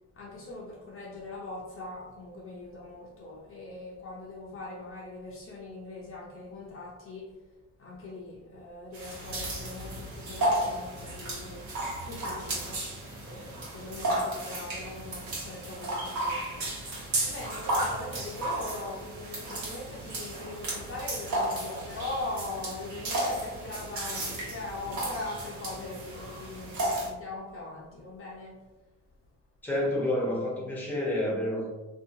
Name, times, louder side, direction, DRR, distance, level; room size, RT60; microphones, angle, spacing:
voice 1, 0.1-7.4 7.8-11.7 12.0-12.9 13.2-28.6, left 2 dB, 45° left, -3 dB, 0.6 m, -41 dB
sound 1, 8.9-27.1, right 1 dB, 70° right, 1.1 m, -34 dB
voice 2, 29.6-31.7, left 1 dB, 5° left, -3 dB, 0.9 m, -29 dB
2.6 x 2.3 x 2.6 m, 1.1 s
cardioid pair, 90°, 30 cm